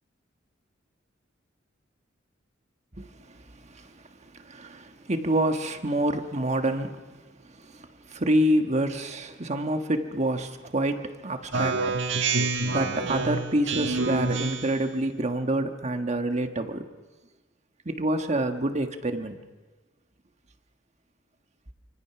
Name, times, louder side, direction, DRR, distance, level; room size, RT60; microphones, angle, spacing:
voice 1, 3.0-12.0 12.6-16.9 17.8-19.4, right 1 dB, 35° right, 1.4 m, -28 dB
Speech synthesizer, 11.5-14.9, right 3 dB, 65° right, 1.5 m, -27 dB
27.5 x 25.5 x 6.0 m
head